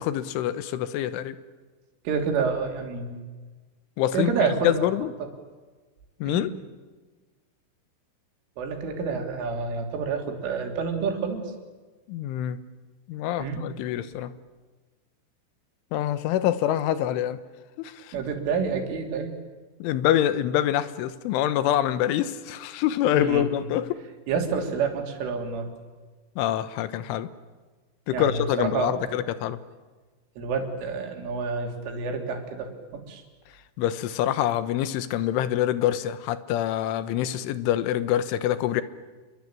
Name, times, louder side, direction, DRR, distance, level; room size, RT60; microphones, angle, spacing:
voice 1, 0.0-1.4 4.0-4.3 4.6-5.1 6.2-6.5 12.1-12.6 13.1-14.3 15.9-17.4 17.8-18.1 19.8-24.0 26.4-27.3 28.1-29.6 33.8-38.8, left 12 dB, 85° left, 13 dB, 3.6 m, -25 dB
voice 2, 2.1-3.2 4.1-4.9 5.2-5.3 6.2-6.5 8.6-11.5 13.4-13.6 18.1-19.3 23.2-23.5 24.3-25.7 28.1-29.2 30.4-33.2, right 5 dB, 90° right, 3 dB, 5.8 m, -28 dB
28.5 x 23.0 x 8.9 m, 1.3 s
omnidirectional pair, 5.5 m